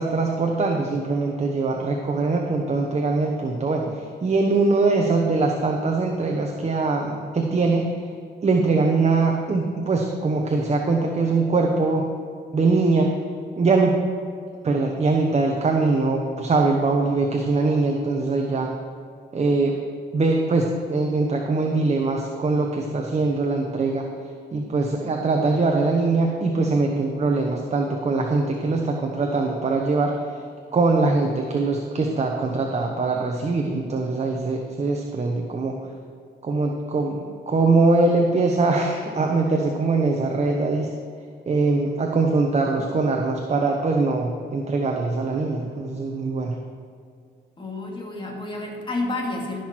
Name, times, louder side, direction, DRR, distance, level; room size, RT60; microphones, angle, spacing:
voice 1, 0.0-8.0 8.4-12.1 12.5-13.1 13.6-14.0 14.6-18.7 19.3-19.8 20.1-24.0 24.5-30.4 30.7-35.8 36.4-40.9 41.5-46.6, right 3 dB, 35° right, 2 dB, 1.0 m, -22 dB
voice 2, 47.6-49.6, left 2 dB, 25° left, -1 dB, 2.6 m, -30 dB
15.5 x 6.0 x 4.6 m, 2.3 s
cardioid pair, 90°, 20 cm